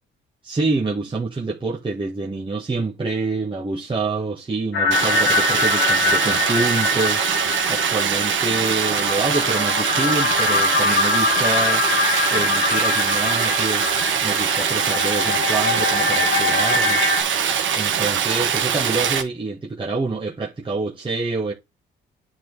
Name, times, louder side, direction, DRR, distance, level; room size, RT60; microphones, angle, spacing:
voice 1, 0.4-7.2 7.7-11.8 12.3-13.9 14.2-17.0 17.7-21.5, right 3 dB, 25° right, 2.0 m, -26 dB
sound 1, 4.7-17.2, left 3 dB, 70° left, 2.5 m, -23 dB
Stream, 4.9-19.2, right 8 dB, 75° right, 1.9 m, -22 dB
9.9 x 4.5 x 4.1 m
cardioid pair, 90°, 20 cm